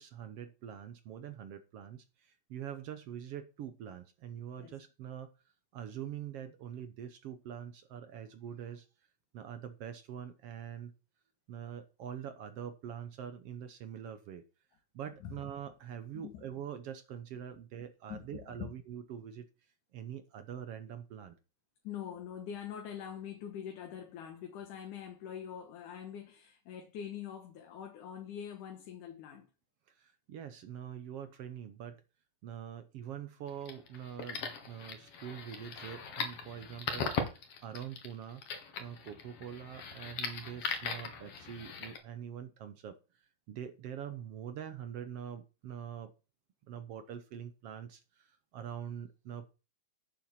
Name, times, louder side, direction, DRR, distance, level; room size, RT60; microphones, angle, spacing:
voice 1, 0.0-5.3 5.7-8.9 9.3-10.9 11.5-14.4 14.9-19.5 19.9-21.3 29.9-32.0 32.4-38.4 38.8-43.0 43.5-46.1 46.7-49.5, right 9 dB, 65° right, 1.6 m, -44 dB
voice 2, 18.1-18.7 21.8-29.5, left 9 dB, 75° left, 2.8 m, -44 dB
sound 1, 33.5-42.0, left 5 dB, 55° left, 2.4 m, -39 dB
9.2 x 7.2 x 5.7 m
omnidirectional pair, 3.6 m